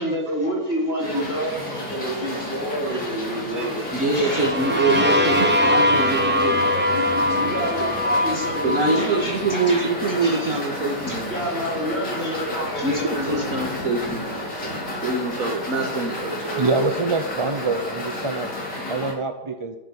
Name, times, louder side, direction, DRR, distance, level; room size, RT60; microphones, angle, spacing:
voice 1, 0.0-6.2 6.5-10.6 11.1-13.5, equal, 35° left, -2 dB, 3.9 m, -29 dB
Conveyor belt, 1.0-19.1, left 1 dB, 90° left, 4.5 m, -32 dB
voice 2, 3.3-7.9 8.6-11.4 12.3-12.5 12.8-12.9 13.2-16.6, right 3 dB, 55° right, 0 dB, 2.2 m, -25 dB
sound 1, 4.1-9.9, left 1 dB, 5° right, 1.0 m, -22 dB
voice 3, 16.6-18.5 18.9-19.8, right 3 dB, 25° right, 6 dB, 0.6 m, -25 dB
12.5 x 11.5 x 8.7 m, 1.0 s
omnidirectional pair, 1.8 m